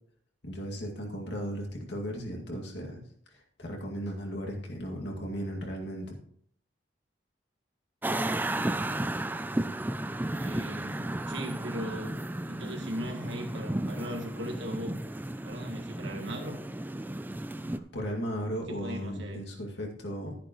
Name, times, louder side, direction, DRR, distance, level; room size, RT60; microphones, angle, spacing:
voice 1, 0.4-3.0 3.6-6.2 17.7-20.4, equal, 70° left, 0 dB, 2.3 m, -36 dB
sound 1, 8.0-17.8, right 1 dB, 10° right, 0.4 m, -33 dB
voice 2, 10.4-12.2 12.4-15.0 15.4-16.6 18.7-19.4, equal, 90° right, 2 dB, 1.8 m, -39 dB
12.0 x 10.0 x 3.1 m, 0.64 s
head